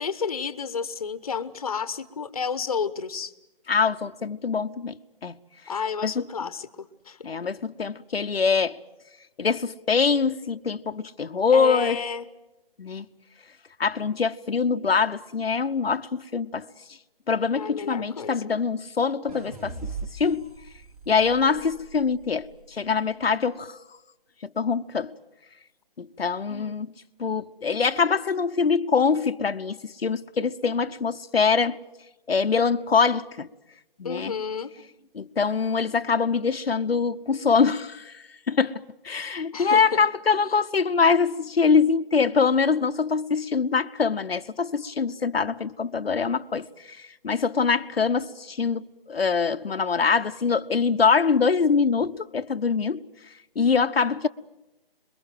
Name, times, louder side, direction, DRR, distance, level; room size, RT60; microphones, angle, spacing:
voice 1, 0.0-3.3 5.7-7.3 11.5-12.3 17.5-18.5 26.5-26.8 34.0-34.7 39.5-40.1, left 6 dB, 40° left, 1.2 m, -31 dB
voice 2, 3.7-4.9 5.2-5.4 6.0-6.1 7.2-8.8 9.4-12.0 12.8-13.0 13.8-16.7 17.3-20.5 21.1-23.8 24.4-25.1 26.0-26.9 27.2-31.8 32.3-33.5 34.0-34.3 35.1-47.0 47.2-53.0 53.6-54.3, left 5 dB, 85° left, 1.0 m, -24 dB
sound 1, 19.3-22.5, right 4 dB, 40° right, 4.2 m, -40 dB
27.0 x 22.5 x 7.7 m
hypercardioid pair, 170°, 29 cm